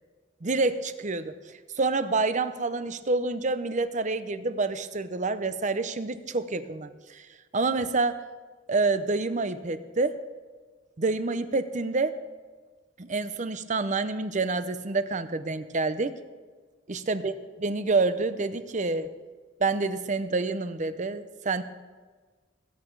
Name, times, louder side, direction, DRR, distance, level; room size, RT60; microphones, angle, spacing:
voice 1, 0.4-1.3 1.8-7.2 7.5-8.2 8.7-10.2 11.0-12.2 13.0-16.1 16.9-19.1 19.6-21.6, right 3 dB, 40° right, 12 dB, 0.8 m, -27 dB
21.5 x 9.0 x 4.7 m, 1.4 s
head